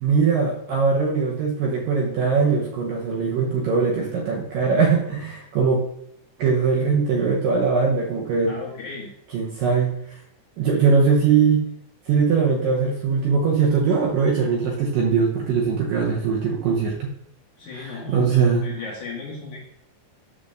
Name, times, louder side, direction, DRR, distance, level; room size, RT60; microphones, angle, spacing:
voice 1, 0.0-5.8 6.4-8.6 9.3-9.9 10.6-11.7 12.1-17.1 17.8-18.7, right 5 dB, 70° right, -1 dB, 2.1 m, -21 dB
voice 2, 8.4-9.1 17.6-19.6, left 4 dB, 60° left, -3 dB, 2.3 m, -36 dB
8.7 x 4.1 x 6.5 m, 0.76 s
omnidirectional pair, 5.0 m